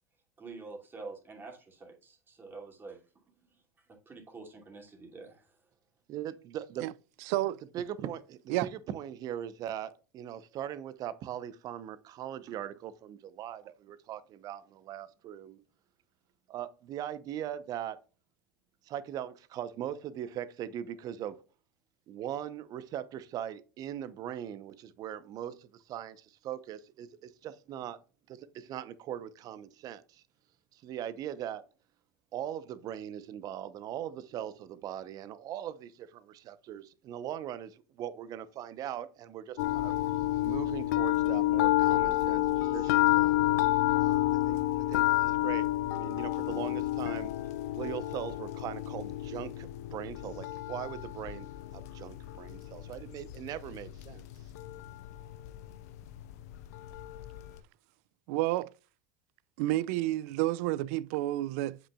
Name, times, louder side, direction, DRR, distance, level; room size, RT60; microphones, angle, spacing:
voice 1, 0.4-3.0 4.1-5.5, right 3 dB, 25° right, 2.6 m, -47 dB
voice 2, 6.1-6.9 7.7-15.6 16.5-18.0 18.8-21.4 22.1-28.0 28.3-30.2 30.7-31.6 32.3-39.9 40.4-43.3 44.0-47.3 47.7-51.5 51.7-54.2, right 10 dB, 45° right, 0.8 m, -40 dB
voice 3, 7.3-7.6 8.5-8.7 58.3-58.7 59.6-61.8, right 16 dB, 65° right, 0.4 m, -30 dB
sound 1, 39.6-57.6, left 16 dB, 70° left, 0.5 m, -30 dB
7.9 x 6.2 x 2.3 m
hypercardioid pair, 90°, 9 cm